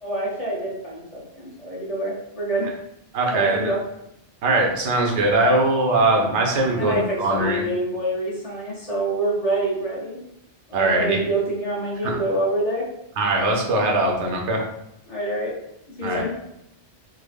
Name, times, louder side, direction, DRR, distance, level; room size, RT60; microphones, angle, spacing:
voice 1, 0.0-2.7 3.3-3.8 6.8-10.2 10.7-12.9 15.1-15.6 15.9-16.3, right 1 dB, 35° left, -6 dB, 1.0 m, -26 dB
voice 2, 3.1-3.7 4.4-7.6 10.7-11.2 12.0-12.2 13.2-14.6 16.0-16.2, right 2 dB, 85° right, 1 dB, 1.0 m, -21 dB
3.7 x 2.1 x 3.2 m, 0.81 s
omnidirectional pair, 1.1 m